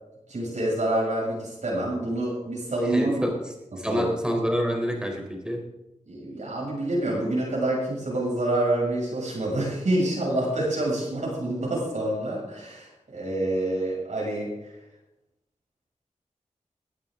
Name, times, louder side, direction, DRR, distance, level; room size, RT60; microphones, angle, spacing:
voice 1, 0.3-3.2 3.9-4.1 6.1-14.7, right 1 dB, 70° right, -5 dB, 6.9 m, -27 dB
voice 2, 2.8-3.4 3.8-5.6, equal, 5° right, 1 dB, 4.0 m, -27 dB
20.5 x 13.0 x 3.9 m, 0.92 s
wide cardioid pair, 75°, 13 cm